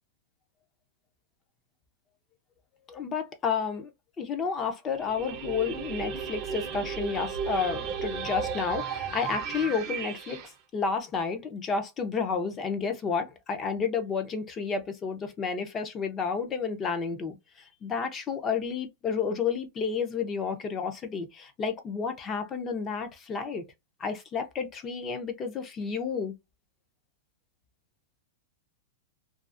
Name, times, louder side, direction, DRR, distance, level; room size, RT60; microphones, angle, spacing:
voice 1, 2.9-3.9 4.2-23.6 24.0-26.4, left 5 dB, 20° left, 0.5 m, -31 dB
sound 1, 5.0-10.5, right 6 dB, 30° right, 0.5 m, -34 dB
2.4 x 2.3 x 2.4 m
supercardioid pair, 160°, 0 cm